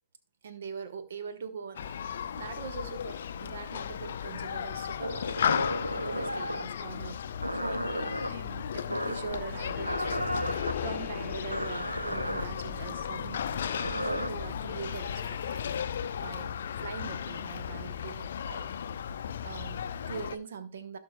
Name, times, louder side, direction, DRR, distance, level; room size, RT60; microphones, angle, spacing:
voice 1, 0.4-5.3 5.9-7.3 7.5-13.5 13.8-15.6 15.9-18.7 19.4-21.0, right 6 dB, 65° right, 1.0 m, -42 dB
Human group actions, 1.7-20.4, left 8 dB, 65° left, 0.4 m, -35 dB
sound 1, 5.0-6.7 7.4-8.3 8.9-9.3 9.8-10.7 11.5-12.4 13.5-14.3, equal, 90° right, 0.7 m, -33 dB
sound 2, 9.3-14.9, right 1 dB, 35° right, 2.5 m, -47 dB
17.0 x 5.8 x 2.3 m
figure-of-eight pair, 90°, 0 cm